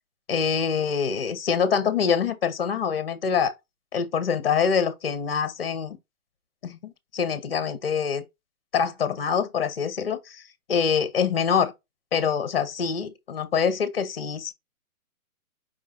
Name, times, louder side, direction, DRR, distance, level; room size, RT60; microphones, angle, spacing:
voice 1, 0.3-3.5 3.9-6.0 6.6-8.2 8.7-10.4 10.7-11.7 12.1-14.5, left 6 dB, 40° left, 0.8 m, -25 dB
5.0 x 2.5 x 3.7 m
hypercardioid pair, 175°, 44 cm